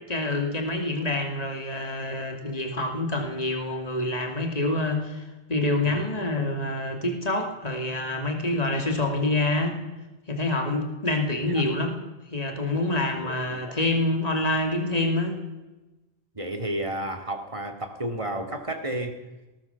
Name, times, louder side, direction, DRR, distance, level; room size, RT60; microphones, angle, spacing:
voice 1, 0.1-9.8 10.3-12.0 12.3-15.4, left 2 dB, 35° left, 4 dB, 2.9 m, -27 dB
voice 2, 16.3-19.2, right 1 dB, 30° right, 5 dB, 2.5 m, -32 dB
19.5 x 19.5 x 7.2 m, 1.1 s
omnidirectional pair, 1.1 m